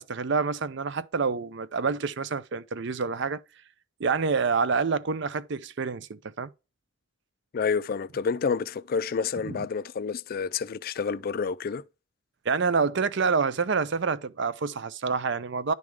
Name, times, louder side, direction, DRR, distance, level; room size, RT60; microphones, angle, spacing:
voice 1, 0.0-3.4 4.0-6.5 9.4-9.7 12.5-15.7, right 5 dB, 60° right, 0.6 m, -27 dB
voice 2, 7.5-11.8, left 5 dB, 45° left, 0.4 m, -29 dB
10.5 x 3.6 x 4.7 m
head